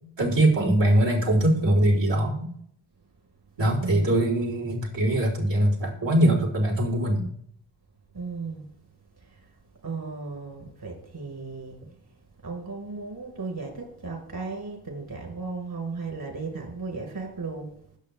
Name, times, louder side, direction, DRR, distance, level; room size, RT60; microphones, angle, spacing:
voice 1, 0.2-2.5 3.6-7.3, right 1 dB, 65° right, 4.2 m, -22 dB
voice 2, 3.8-4.2 8.1-8.6 9.8-11.8 12.4-17.7, right 4 dB, 50° right, 5.0 m, -35 dB
20.0 x 7.4 x 3.6 m
supercardioid pair, 40°, 46 cm